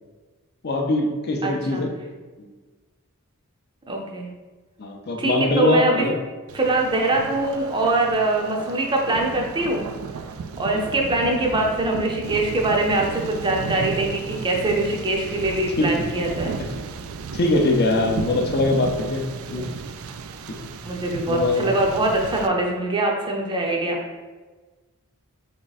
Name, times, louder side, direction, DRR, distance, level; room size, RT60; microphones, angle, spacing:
voice 1, 0.6-1.9 2.4-2.5 4.8-6.1 10.7-10.8 15.8-16.0 17.3-19.2 19.5-19.6 20.5-20.6 21.3-21.7, left 2 dB, 50° left, 3 dB, 0.5 m, -22 dB
voice 2, 1.4-1.8 3.9-4.3 5.2-6.0 6.5-9.9 10.6-16.6 20.8-24.0, right 2 dB, 20° right, 0 dB, 0.6 m, -23 dB
Thunder, 6.5-22.5, right 5 dB, 65° right, 0.3 m, -34 dB
3.7 x 3.1 x 4.0 m, 1.3 s
head